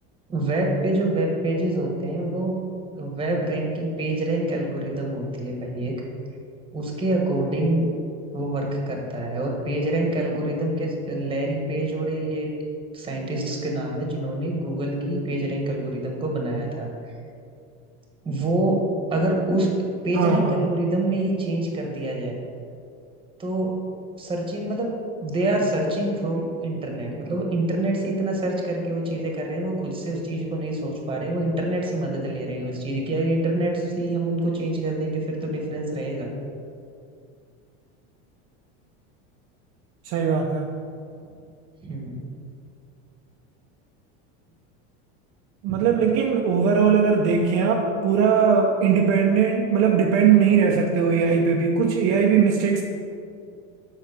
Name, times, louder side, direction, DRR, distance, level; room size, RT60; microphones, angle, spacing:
voice 1, 0.3-2.5 2.9-5.9 6.7-7.8 8.3-12.5 12.9-17.1 18.2-18.8 19.1-19.7 20.0-22.4 23.4-23.7 24.2-24.9 25.2-36.3 41.8-42.2 45.7-45.9, right 1 dB, 15° right, 0 dB, 1.4 m, -26 dB
voice 2, 20.1-20.6 40.0-40.7 45.6-52.8, right 6 dB, 50° right, 0 dB, 0.7 m, -20 dB
7.4 x 5.7 x 4.9 m, 2.4 s
supercardioid pair, 145°, 32 cm